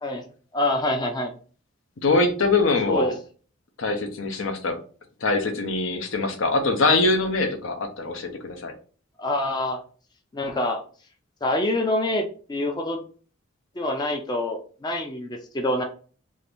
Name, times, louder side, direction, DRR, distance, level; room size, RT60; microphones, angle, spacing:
voice 1, 0.5-1.3 2.9-3.1 9.2-9.8 10.3-10.8 11.4-13.0 13.8-15.8, left 1 dB, 20° left, 0.4 m, -26 dB
voice 2, 2.0-3.1 3.8-4.8 5.2-8.7, left 3 dB, 70° left, 0.6 m, -23 dB
2.7 x 2.5 x 3.4 m
head